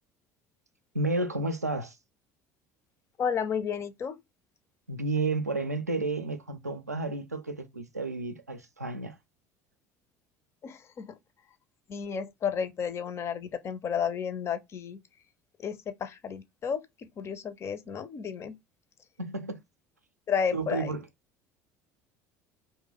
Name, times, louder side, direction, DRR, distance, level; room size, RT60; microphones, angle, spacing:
voice 1, 0.9-2.0 4.9-9.2 19.2-19.6 20.5-21.1, right 2 dB, 85° right, 0.4 m, -31 dB
voice 2, 3.2-4.2 10.6-11.2 11.9-15.0 15.6-18.6 20.3-20.9, left 7 dB, 35° left, 0.5 m, -32 dB
2.9 x 2.1 x 3.7 m
figure-of-eight pair, 60°, 8 cm